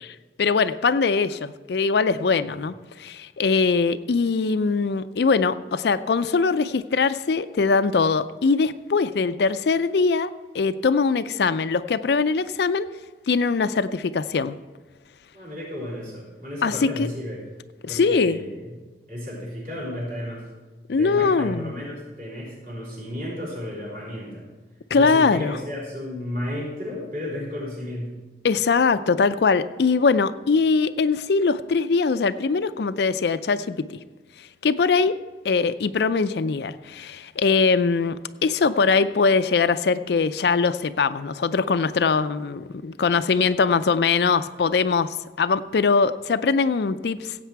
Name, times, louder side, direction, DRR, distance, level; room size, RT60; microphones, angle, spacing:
voice 1, 0.4-2.7 3.0-12.9 13.3-14.6 16.6-17.1 17.8-18.4 20.9-21.7 24.9-25.6 28.4-34.0 34.6-35.1 35.4-47.3, left 4 dB, 65° left, 12 dB, 0.4 m, -22 dB
voice 2, 15.3-17.4 17.9-18.7 19.1-20.5 20.9-24.4 24.9-28.2, left 1 dB, 45° right, -4 dB, 4.6 m, -33 dB
16.0 x 8.1 x 4.6 m, 1.2 s
head